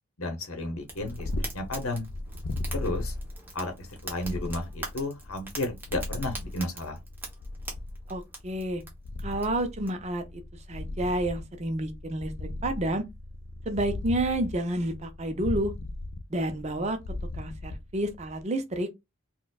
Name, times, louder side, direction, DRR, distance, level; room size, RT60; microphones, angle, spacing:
voice 1, 0.2-1.3 1.5-2.0 2.7-3.1 3.5-3.7 4.0-7.0, left 2 dB, 80° left, 0.8 m, -32 dB
Purr, 0.7-18.4, left 2 dB, 60° left, 0.4 m, -37 dB
Fire, 0.9-9.9, right 2 dB, 10° right, 0.9 m, -43 dB
voice 2, 8.1-8.8 9.2-10.2 10.7-13.0 13.7-15.7 16.3-17.0 17.3-18.9, right 1 dB, 30° right, 0.5 m, -30 dB
4.2 x 2.2 x 2.3 m
head